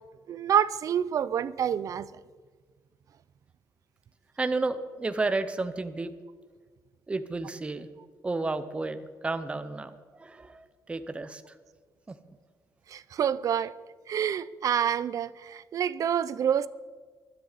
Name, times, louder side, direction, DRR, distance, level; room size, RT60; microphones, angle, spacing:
voice 1, 0.3-2.1 12.9-13.7 14.1-16.7, right 9 dB, 50° right, 0.5 m, -27 dB
voice 2, 4.4-6.1 7.1-7.9 8.2-9.0 9.2-11.4 12.1-12.2, right 3 dB, 15° right, 0.7 m, -31 dB
20.0 x 13.0 x 4.1 m
cardioid pair, 155°, 8 cm